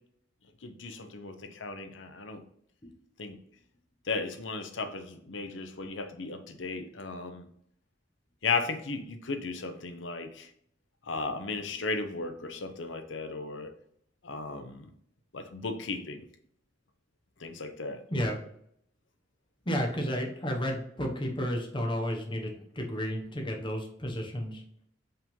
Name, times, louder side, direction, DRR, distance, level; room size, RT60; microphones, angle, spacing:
voice 1, 0.6-2.4 3.2-3.4 4.1-7.5 8.4-10.5 11.1-13.7 14.2-14.9 15.3-16.2 17.4-18.0, left 4 dB, 85° left, 8 dB, 0.8 m, -35 dB
voice 2, 19.6-24.6, equal, 25° left, 1 dB, 1.1 m, -32 dB
5.6 x 3.7 x 5.3 m, 0.68 s
head